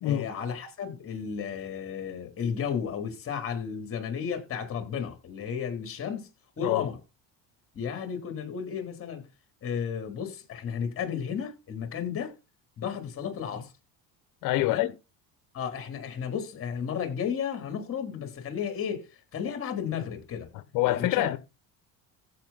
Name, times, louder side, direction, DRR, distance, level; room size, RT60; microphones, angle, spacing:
voice 1, 0.0-6.3 6.6-7.0 7.7-9.2 9.6-12.3 12.8-13.7 14.6-14.9 15.5-20.5 20.8-21.3, left 7 dB, 40° left, 3.6 m, -33 dB
voice 2, 14.4-14.9 20.5-21.4, left 15 dB, 70° left, 1.3 m, -26 dB
15.0 x 5.8 x 4.2 m
cardioid pair, 120°, 34 cm